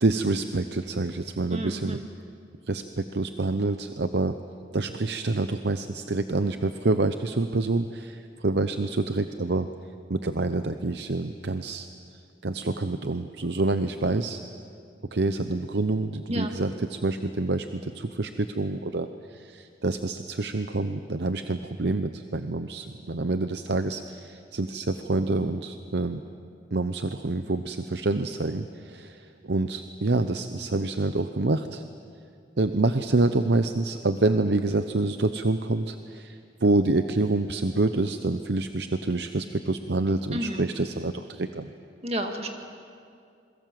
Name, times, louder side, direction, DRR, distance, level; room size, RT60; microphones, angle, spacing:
voice 1, 0.0-2.0 2.7-4.3 4.7-9.7 10.1-11.9 12.4-14.4 15.1-26.2 26.7-31.8 32.6-41.7, right 2 dB, 70° right, 9 dB, 0.8 m, -27 dB
voice 2, 1.5-2.1 16.3-16.5 40.3-40.6 42.0-42.5, equal, 35° right, 4 dB, 2.1 m, -31 dB
27.5 x 22.5 x 7.7 m, 2.4 s
head